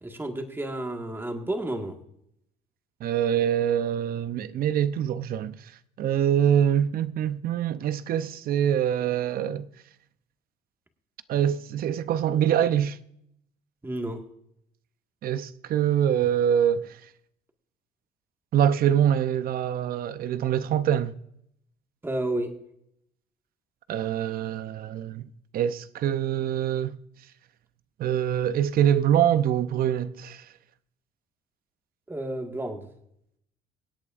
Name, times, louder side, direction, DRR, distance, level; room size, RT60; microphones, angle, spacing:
voice 1, 0.0-1.9 13.8-14.2 22.0-22.5 32.1-32.9, right 1 dB, 15° right, 1.7 m, -31 dB
voice 2, 3.0-5.6 6.0-9.7 11.3-13.0 15.2-17.0 18.5-21.1 23.9-25.2 25.5-27.0 28.0-30.4, right 10 dB, 60° right, 0.7 m, -24 dB
25.0 x 8.4 x 2.5 m
cardioid pair, 110°, 17 cm